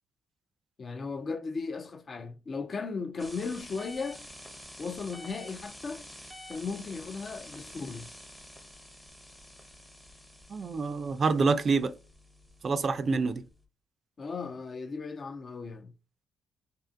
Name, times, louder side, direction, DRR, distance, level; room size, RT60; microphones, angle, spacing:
voice 1, 0.8-4.3 4.8-6.1 6.5-8.1 14.2-15.9, left 4 dB, 40° left, 0.3 m, -36 dB
sound 1, 3.2-13.6, left 1 dB, 5° left, 0.6 m, -49 dB
voice 2, 10.5-11.9 12.6-13.4, right 4 dB, 45° right, 0.3 m, -27 dB
2.4 x 2.4 x 2.5 m
cardioid pair, 90°, 0 cm